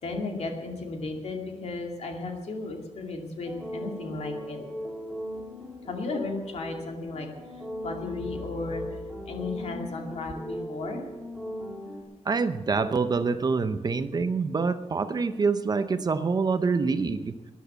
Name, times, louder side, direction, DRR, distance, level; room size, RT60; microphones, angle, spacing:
voice 1, 0.0-4.6 5.9-7.3 7.8-8.8 9.3-11.0, left 3 dB, 65° left, 2 dB, 2.4 m, -34 dB
sound 1, 3.5-12.0, equal, ahead, 2.4 m, -38 dB
voice 2, 12.3-17.3, right 4 dB, 35° right, 11 dB, 0.7 m, -26 dB
13.5 x 10.5 x 8.1 m, 1.1 s
wide cardioid pair, 165°, 12 cm